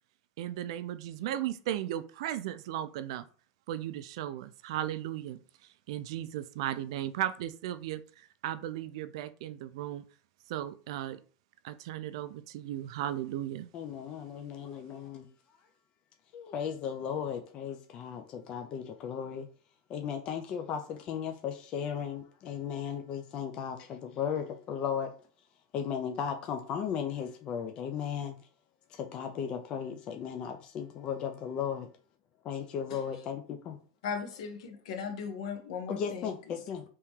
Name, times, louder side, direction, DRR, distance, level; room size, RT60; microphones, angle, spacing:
voice 1, 0.4-3.3 3.7-5.4 5.9-10.0 10.5-11.2 11.6-13.7, right 12 dB, 55° right, 0.3 m, -36 dB
voice 2, 13.7-15.3 16.3-19.5 19.9-25.1 25.7-28.4 28.9-31.9 32.4-33.8 35.9-36.8, left 8 dB, 25° left, 0.4 m, -36 dB
voice 3, 34.0-36.6, left 6 dB, 65° left, 1.0 m, -38 dB
3.6 x 2.9 x 4.5 m
supercardioid pair, 175°, 4 cm